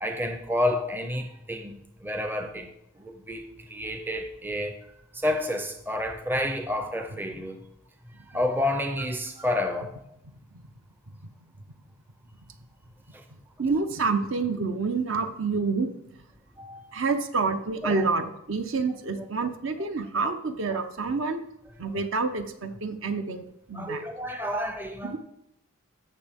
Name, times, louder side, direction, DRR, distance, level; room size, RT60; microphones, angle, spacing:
voice 1, 0.0-4.8 5.1-7.6 8.3-10.0 13.1-13.2 16.6-16.9 17.8-18.1 20.7-20.8 23.7-25.2, left 1 dB, 10° right, 6 dB, 0.5 m, -30 dB
voice 2, 13.6-15.9 16.9-21.5 21.8-24.0 25.0-25.2, right 4 dB, 60° right, 8 dB, 0.8 m, -28 dB
15.5 x 6.2 x 3.5 m, 0.83 s
head